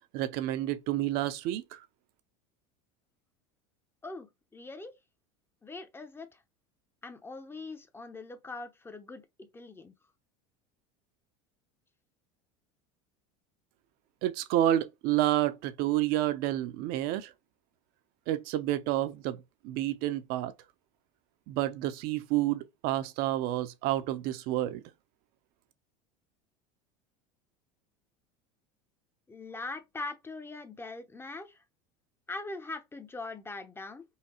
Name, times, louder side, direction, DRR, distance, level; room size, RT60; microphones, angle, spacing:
voice 1, 0.1-1.8 14.2-17.3 18.3-19.4 19.6-20.5 21.5-24.8, right 14 dB, 60° right, 0.7 m, -29 dB
voice 2, 4.5-4.9 5.6-6.3 7.0-9.9 29.3-31.6 32.3-34.0, left 3 dB, 15° left, 0.8 m, -41 dB
5.6 x 2.3 x 3.0 m
supercardioid pair, 110°, 17 cm